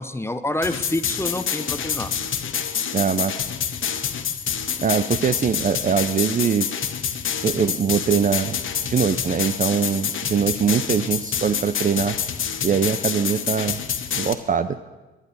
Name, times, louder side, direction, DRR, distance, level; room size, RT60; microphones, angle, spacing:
voice 1, 0.0-2.1, left 1 dB, 10° left, 11 dB, 0.9 m, -27 dB
sound 1, 0.6-14.3, left 7 dB, 45° left, 1.2 m, -27 dB
voice 2, 2.9-3.4 4.8-6.7 7.4-8.6 8.8-12.2 12.6-13.8 14.1-14.8, right 7 dB, 30° right, 11 dB, 0.6 m, -22 dB
23.5 x 10.5 x 4.1 m, 1.2 s
hypercardioid pair, 50°, 29 cm